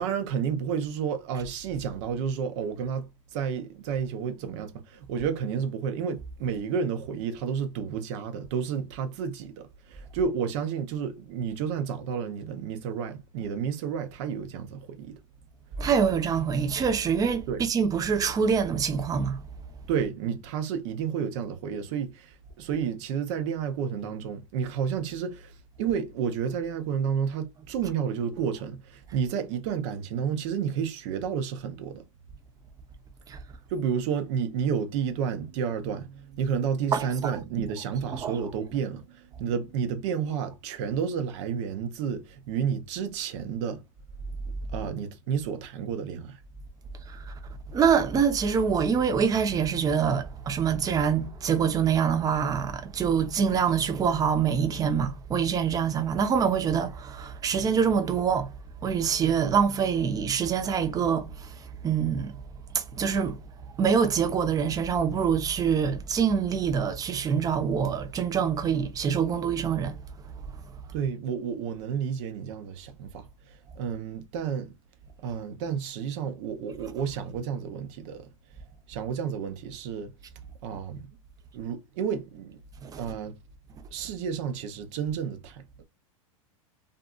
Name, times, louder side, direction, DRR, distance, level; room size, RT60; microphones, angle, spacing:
voice 1, 0.0-15.2 17.5-17.6 19.9-32.0 33.7-43.8 44.7-46.4 70.9-74.7 75.2-78.3 78.9-80.1 80.6-81.1 81.5-82.6 83.0-83.3 83.9-85.8, right 7 dB, 60° right, 0.7 m, -31 dB
voice 2, 15.8-19.4 33.3-33.4 36.9-37.3 38.2-38.3 47.7-58.5 58.8-61.5 61.8-62.3 62.7-63.4 63.8-70.0 82.8-83.0, right 7 dB, 20° right, 0.5 m, -25 dB
2.6 x 2.5 x 2.3 m
hypercardioid pair, 115°, 17 cm